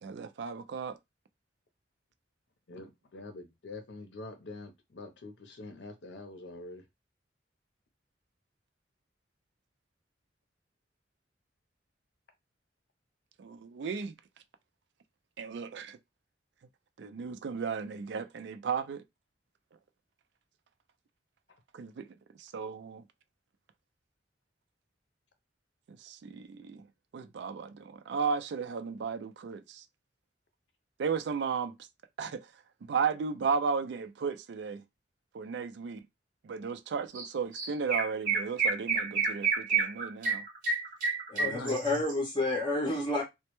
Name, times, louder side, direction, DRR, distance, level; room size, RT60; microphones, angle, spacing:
voice 1, 0.0-1.0 13.4-14.1 15.4-16.0 17.0-19.0 21.7-22.1 22.4-23.0 25.9-26.8 27.1-29.8 31.0-31.8 32.2-32.5 32.8-34.8 35.3-36.0 36.4-40.4, right 5 dB, 70° right, 0.3 m, -34 dB
voice 2, 2.7-6.8 41.4-41.8, left 3 dB, 75° left, 0.6 m, -43 dB
Chirp tweet, 37.1-37.3 37.5-42.1, right 5 dB, 50° right, 0.7 m, -29 dB
voice 3, 41.3-43.2, left 2 dB, 25° left, 0.5 m, -30 dB
2.1 x 2.0 x 2.9 m
head